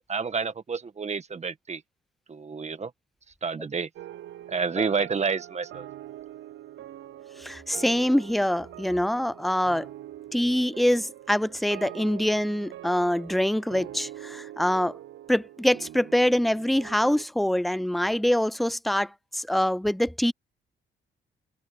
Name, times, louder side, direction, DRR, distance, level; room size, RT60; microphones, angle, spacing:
voice 1, 0.1-1.8 2.3-2.9 3.4-3.9 4.5-5.9, right 5 dB, 35° right, 1.7 m, -29 dB
sound 1, 4.0-17.3, right 13 dB, 70° right, 0.8 m, -43 dB
voice 2, 7.4-9.9 10.3-14.9 15.3-19.1 19.3-20.3, left 1 dB, ahead, 0.4 m, -24 dB
cardioid pair, 90°, 20 cm